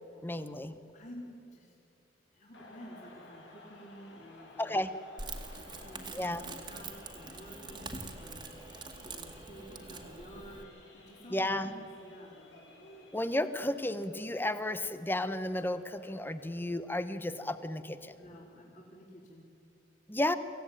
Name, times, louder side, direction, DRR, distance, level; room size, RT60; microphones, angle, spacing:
voice 1, 0.2-0.8 4.6-4.9 6.1-6.4 11.3-11.7 13.1-18.1 20.1-20.4, left 1 dB, 10° left, 11 dB, 1.0 m, -33 dB
voice 2, 0.9-1.8 2.3-4.8 5.5-8.5 9.0-12.4 18.1-19.5, equal, 40° left, -3 dB, 3.7 m, -51 dB
sound 1, 2.5-16.7, left 2 dB, 80° left, 5.2 m, -56 dB
Crackle, 5.2-10.6, right 3 dB, 25° right, 2.1 m, -45 dB
24.5 x 16.5 x 10.0 m, 2.7 s
head